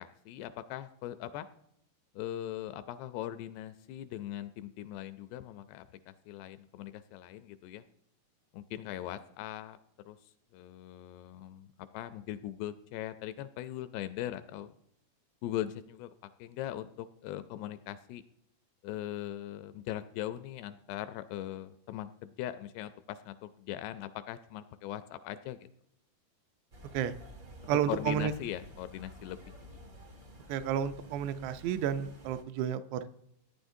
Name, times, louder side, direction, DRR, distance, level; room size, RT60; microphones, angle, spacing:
voice 1, 0.0-1.5 2.1-7.8 8.5-9.8 10.1-10.2 10.5-14.7 15.4-16.1 16.4-18.2 18.8-25.6 27.6-29.4, left 12 dB, 85° left, 11 dB, 2.5 m, -40 dB
sound 1, 26.7-32.4, equal, 65° right, 0.7 m, -51 dB
voice 2, 27.7-28.3 30.5-33.1, right 9 dB, 85° right, 10 dB, 2.7 m, -31 dB
17.5 x 9.7 x 2.7 m, 0.76 s
omnidirectional pair, 5.0 m